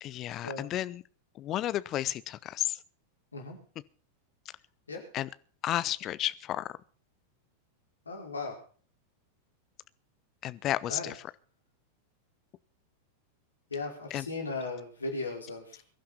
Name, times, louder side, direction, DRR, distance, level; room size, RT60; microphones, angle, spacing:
voice 1, 0.0-1.0 1.3-2.8 5.1-5.3 5.6-6.7 10.4-11.2 14.1-14.3, left 13 dB, 35° left, 0.8 m, -32 dB
voice 2, 8.0-8.6 10.9-11.1 13.7-15.8, left 3 dB, 75° left, 5.0 m, -37 dB
22.5 x 11.5 x 4.3 m
figure-of-eight pair, 90°, 0 cm